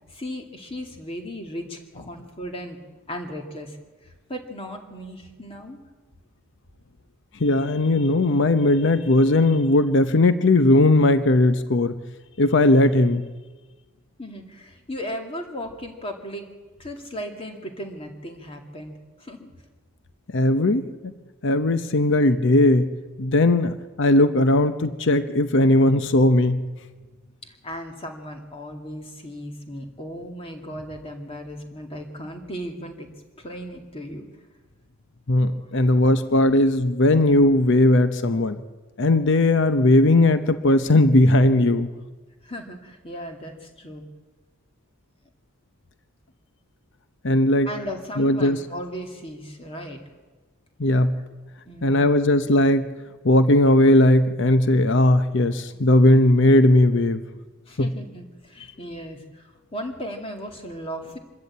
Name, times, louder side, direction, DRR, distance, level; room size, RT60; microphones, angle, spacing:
voice 1, 0.1-2.8 3.1-3.8 4.0-5.8 14.2-16.5 16.8-18.9 19.2-19.5 27.4-33.1 33.3-34.3 42.4-44.0 47.7-50.0 51.7-52.2 57.7-61.2, equal, 25° left, 3 dB, 2.4 m, -36 dB
voice 2, 7.4-12.0 12.4-13.3 20.3-21.1 21.4-22.9 23.2-26.6 35.3-38.6 39.0-41.9 47.2-47.7 48.2-48.6 50.8-51.1 51.8-52.9 53.2-57.2 57.8-57.9, left 1 dB, 60° left, 11 dB, 0.8 m, -18 dB
25.0 x 13.5 x 8.5 m, 1.3 s
head